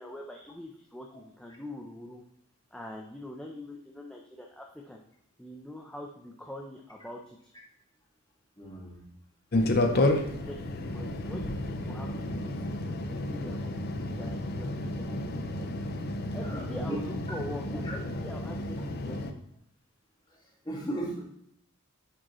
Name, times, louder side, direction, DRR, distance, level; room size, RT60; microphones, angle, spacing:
voice 1, 0.0-2.2 2.7-5.0 5.4-7.5 9.9-15.2 16.3-19.4, left 1 dB, 5° left, -1 dB, 0.6 m, -44 dB
voice 2, 8.6-9.0 16.4-17.0 17.7-17.9 20.3-20.4 20.6-21.2, right 1 dB, 20° left, -3 dB, 1.9 m, -36 dB
sound 1, 9.5-19.3, left 1 dB, 50° left, 0.7 m, -31 dB
10.0 x 5.0 x 3.1 m, 0.71 s
head